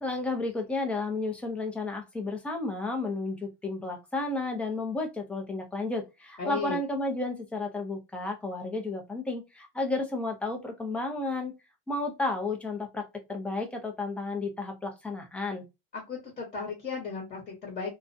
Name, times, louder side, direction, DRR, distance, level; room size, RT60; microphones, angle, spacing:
voice 1, 0.0-11.5 11.9-15.6, left 2 dB, 5° left, 0.5 m, -32 dB
voice 2, 6.4-6.8 15.9-17.9, left 5 dB, 25° left, 1.0 m, -35 dB
2.4 x 2.1 x 2.5 m
supercardioid pair, 135°, 30 cm